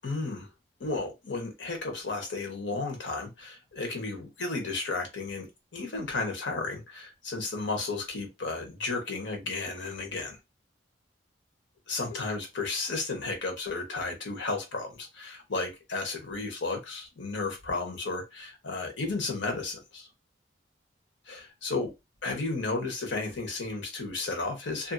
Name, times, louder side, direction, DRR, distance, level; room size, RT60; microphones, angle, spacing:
voice 1, 0.0-0.5 0.8-10.4 11.9-20.1 21.3-21.9 22.2-24.9, left 3 dB, 80° left, 1.0 m, -33 dB
2.7 x 2.6 x 2.6 m
head